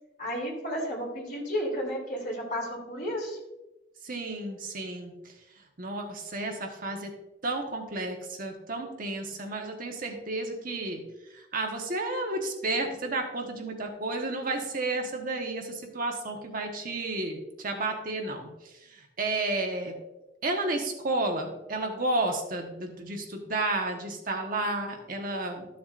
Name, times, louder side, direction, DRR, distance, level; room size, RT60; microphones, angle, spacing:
voice 1, 0.2-3.4, equal, 50° left, -3 dB, 3.1 m, -32 dB
voice 2, 4.0-5.3 5.8-7.1 7.4-11.0 11.3-19.9 20.4-25.7, right 2 dB, 50° right, 2 dB, 1.2 m, -32 dB
13.0 x 7.0 x 2.5 m, 0.97 s
head